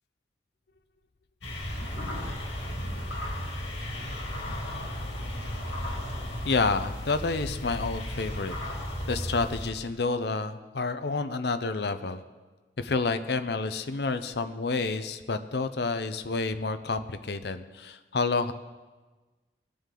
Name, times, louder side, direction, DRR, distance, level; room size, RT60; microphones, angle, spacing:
sound 1, 1.4-9.7, left 1 dB, 85° left, 2.5 m, -34 dB
voice 1, 6.5-8.6 9.1-12.2 12.8-18.5, left 3 dB, 65° left, 10 dB, 0.6 m, -29 dB
19.5 x 8.6 x 3.8 m, 1.3 s
head